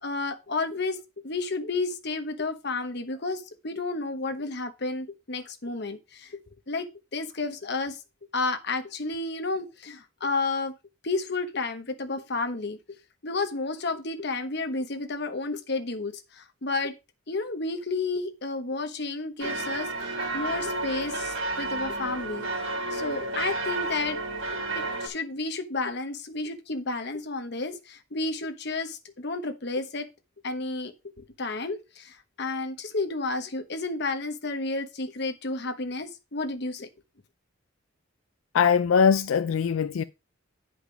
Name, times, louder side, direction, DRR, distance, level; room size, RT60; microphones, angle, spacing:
voice 1, 0.0-6.4 6.7-8.0 8.3-10.7 11.0-12.8 13.2-16.9 17.3-22.5 22.9-24.2 24.7-30.1 30.4-36.9, left 3 dB, 55° left, 1.1 m, -31 dB
sound 1, 19.4-25.1, right 2 dB, 75° right, 2.7 m, -31 dB
voice 2, 38.5-40.0, left 6 dB, 80° left, 0.4 m, -21 dB
8.8 x 5.2 x 5.0 m
head